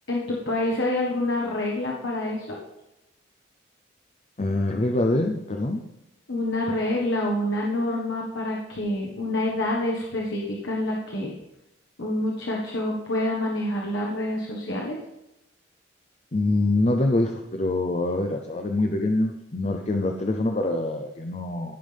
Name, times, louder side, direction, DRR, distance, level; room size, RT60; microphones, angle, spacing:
voice 1, 0.1-2.6 6.3-11.3 12.0-15.0, left 1 dB, 75° left, -2 dB, 1.6 m, -27 dB
voice 2, 4.4-5.8 16.3-21.8, left 2 dB, 35° left, 3 dB, 0.7 m, -25 dB
17.0 x 5.8 x 3.5 m, 0.92 s
head